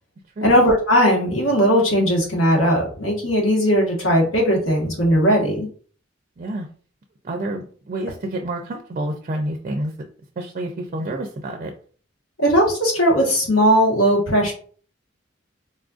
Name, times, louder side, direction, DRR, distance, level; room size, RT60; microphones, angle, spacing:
voice 1, 0.4-5.7 12.4-14.5, equal, 90° left, -2 dB, 1.3 m, -18 dB
voice 2, 6.4-6.7 7.2-10.1 10.4-11.7, right 1 dB, 40° right, 4 dB, 0.4 m, -28 dB
4.0 x 2.4 x 2.4 m, 0.44 s
head